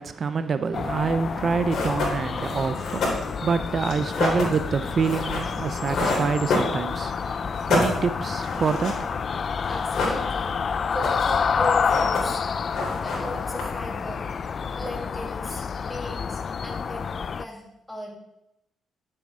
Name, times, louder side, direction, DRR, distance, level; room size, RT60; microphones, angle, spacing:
voice 1, 0.0-9.7, right 5 dB, 45° right, 0.5 m, -27 dB
sound 1, 0.7-17.4, left 6 dB, 45° left, 0.4 m, -29 dB
sound 2, 1.3-1.4 1.7-7.2 7.5-9.3 9.6-10.6 10.8-11.4 11.7-12.5 12.7-13.9, left 2 dB, 65° left, 3.3 m, -28 dB
voice 2, 9.7-10.5 10.9-12.4 13.0-14.3 14.8-18.1, left 1 dB, 5° left, 2.3 m, -37 dB
9.9 x 7.7 x 3.6 m
cardioid pair, 90°, 0 cm